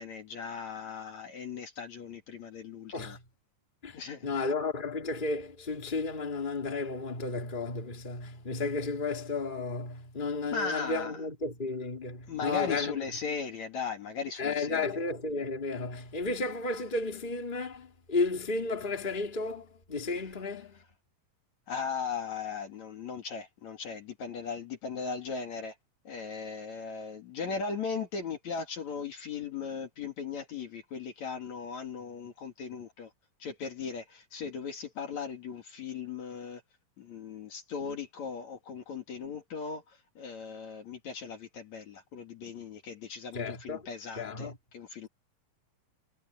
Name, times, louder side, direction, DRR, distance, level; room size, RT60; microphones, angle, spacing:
voice 1, 0.0-3.2 3.9-4.3 10.5-11.2 12.3-14.9 21.7-25.8 26.0-33.1 33.4-36.6 37.0-45.1, left 5 dB, 55° left, 3.2 m, -38 dB
voice 2, 3.8-13.0 14.4-20.8 43.3-43.8 44.2-44.5, left 3 dB, 15° left, 2.7 m, -33 dB
omnidirectional pair, 4.1 m